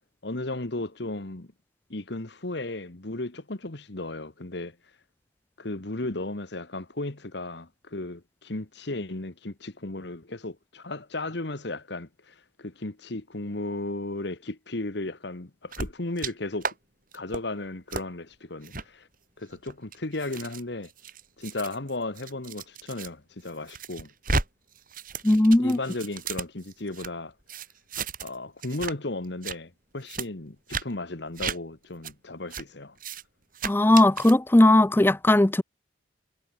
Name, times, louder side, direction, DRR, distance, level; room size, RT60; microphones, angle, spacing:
voice 1, 0.2-1.5 1.9-4.8 5.6-16.7 17.1-19.1 19.4-20.9 21.4-24.1 25.6-27.3 28.2-33.0, left 2 dB, 60° left, 1.5 m, -35 dB
sound 1, 15.7-16.3 16.6-16.7 17.1-17.4 17.9-18.0 18.6-18.8 19.5-23.1 23.4-24.5 24.7-27.1 27.5-28.4 28.6-28.9 29.2-29.6 30.1-30.3 30.7-30.8 31.4-31.6 32.0-32.1 32.5-32.6 33.0-33.2 33.5-34.3, right 4 dB, 45° right, 5.8 m, -34 dB
voice 2, 25.2-25.8 33.6-35.6, left 1 dB, 10° left, 0.4 m, -18 dB
head